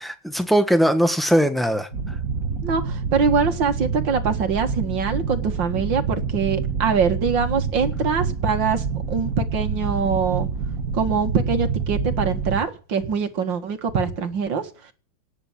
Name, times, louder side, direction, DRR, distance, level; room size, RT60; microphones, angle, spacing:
voice 1, 0.0-2.1, equal, ahead, 1.2 m, -20 dB
sound 1, 1.9-12.6, right 5 dB, 45° right, 2.3 m, -27 dB
voice 2, 2.6-10.5 10.9-14.9, right 5 dB, 70° right, 2.4 m, -23 dB
18.5 x 6.9 x 8.8 m
omnidirectional pair, 2.1 m